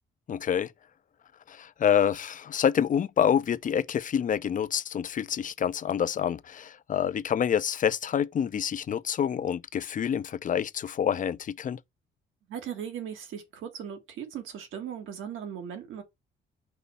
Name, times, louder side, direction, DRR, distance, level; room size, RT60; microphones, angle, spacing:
voice 1, 0.3-0.7 1.5-11.8, left 8 dB, 40° left, 0.5 m, -27 dB
voice 2, 12.5-16.0, right 8 dB, 85° right, 1.6 m, -38 dB
5.5 x 3.1 x 5.6 m
cardioid pair, 90°, 20 cm